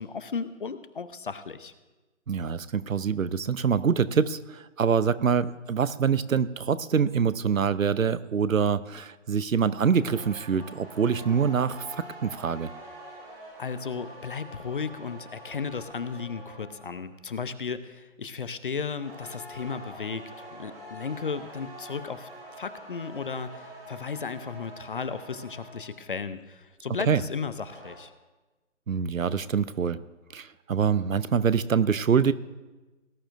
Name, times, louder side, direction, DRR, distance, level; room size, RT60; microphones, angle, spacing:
voice 1, 0.0-1.7 13.6-22.3 22.6-28.1, left 5 dB, 40° left, 13 dB, 0.6 m, -35 dB
voice 2, 2.3-12.7 27.1-27.2 28.9-30.0 30.3-32.3, right 6 dB, 85° right, 16 dB, 0.7 m, -25 dB
sound 1, 9.9-17.0 19.0-26.1 27.3-28.0, right 1 dB, 45° right, 4.6 m, -45 dB
18.5 x 11.5 x 2.6 m, 1.1 s
figure-of-eight pair, 145°, 39 cm